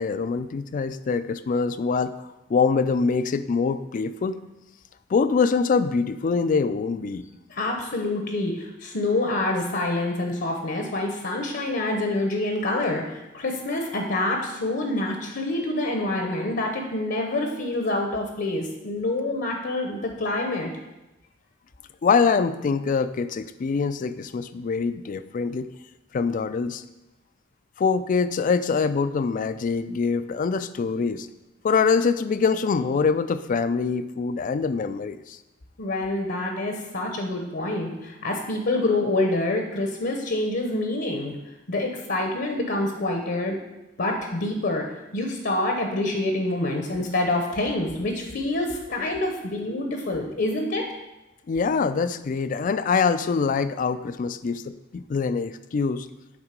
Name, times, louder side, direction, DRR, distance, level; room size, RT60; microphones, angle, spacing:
voice 1, 0.0-4.4 5.1-7.2 22.0-25.7 26.1-26.8 27.8-31.3 31.6-35.4 51.5-56.1, left 5 dB, 45° left, 13 dB, 0.3 m, -24 dB
voice 2, 7.5-20.7 35.8-41.4 41.7-43.6 44.0-44.9 45.1-50.8, left 2 dB, 60° left, 3 dB, 0.8 m, -26 dB
8.8 x 3.7 x 5.1 m, 1.0 s
head